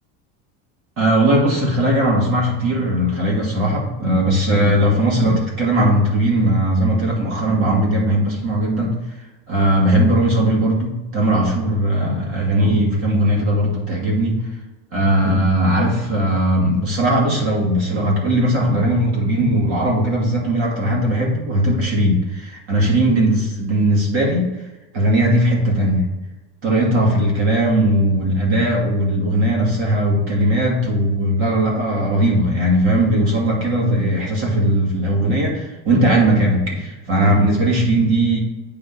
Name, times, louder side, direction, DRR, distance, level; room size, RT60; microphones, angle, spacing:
voice 1, 1.0-8.9 9.5-14.4 14.9-24.5 24.9-26.1 26.6-38.4, right 1 dB, 40° right, -2 dB, 2.3 m, -18 dB
8.3 x 3.9 x 5.9 m, 1.1 s
cardioid pair, 175°, 33 cm